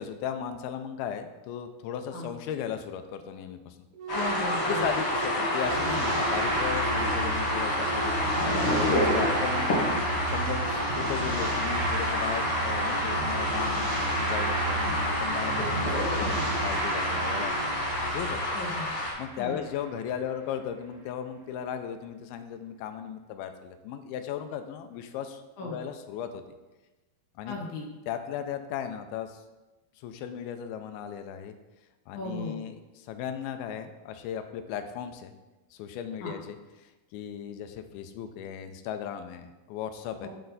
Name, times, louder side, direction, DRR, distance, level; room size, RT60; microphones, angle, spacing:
voice 1, 0.0-3.8 4.6-9.8 10.3-17.8 18.1-18.4 19.2-26.5 27.4-27.6 28.1-29.4 30.0-31.5 32.1-35.3 35.7-40.3, left 9 dB, 90° left, 8 dB, 2.5 m, -36 dB
sound 1, 3.9-11.2, right 3 dB, 65° right, 2.0 m, -38 dB
voice 2, 4.1-5.0 14.8-15.0 18.5-18.9 19.4-19.6 25.6-25.8 27.5-27.9 32.1-32.6 36.2-36.3 40.2-40.3, left 2 dB, 70° left, 0 dB, 2.2 m, -36 dB
sound 2, 4.1-19.1, left 1 dB, 50° left, 2.0 m, -29 dB
sound 3, 5.6-20.0, right 2 dB, 80° right, 2.9 m, -32 dB
10.0 x 4.3 x 4.0 m, 1.1 s
omnidirectional pair, 4.3 m